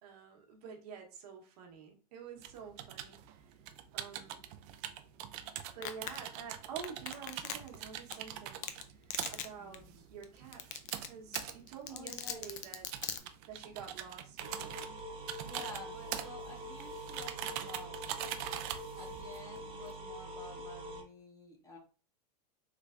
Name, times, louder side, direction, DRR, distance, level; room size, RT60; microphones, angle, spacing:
voice 1, 0.0-3.6 3.9-4.4 5.7-12.9 13.4-15.0, right 6 dB, 70° right, 2 dB, 1.0 m, -49 dB
sound 1, 2.4-19.9, right 11 dB, 45° right, 0.4 m, -44 dB
Domestic sounds home sounds, 5.8-6.2 6.8-7.8 8.1-8.2 8.6-8.8 9.1-9.5 9.7-9.8 10.2-10.3 10.5-11.1 11.3-13.2, left 10 dB, 40° left, 0.4 m, -38 dB
voice 2, 9.6-10.0 11.9-12.4 15.4-18.2 19.0-21.8, left 3 dB, 15° left, 2 dB, 0.8 m, -52 dB
sound 2, 14.4-21.0, right 1 dB, 25° right, 1.0 m, -45 dB
3.3 x 3.1 x 2.4 m, 0.37 s
supercardioid pair, 135°, 21 cm